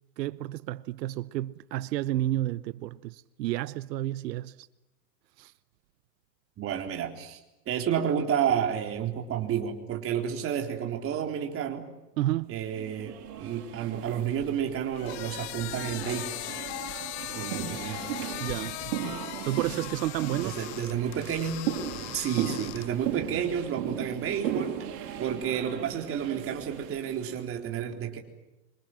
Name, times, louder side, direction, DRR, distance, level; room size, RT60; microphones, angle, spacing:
voice 1, 0.2-4.7 5.4-5.5 12.2-12.6 18.4-19.0 19.4-20.8, right 15 dB, 85° right, 0.9 m, -31 dB
voice 2, 6.6-7.4 7.7-11.9 12.5-16.3 17.3-18.3 20.4-21.6 22.1-24.7 25.2-28.2, right 8 dB, 25° right, 4.0 m, -31 dB
sound 1, 12.7-27.4, right 9 dB, 55° right, 6.6 m, -37 dB
sound 2, 14.9-23.1, left 18 dB, 45° left, 1.0 m, -39 dB
27.0 x 25.5 x 7.5 m
supercardioid pair, 155°, 49 cm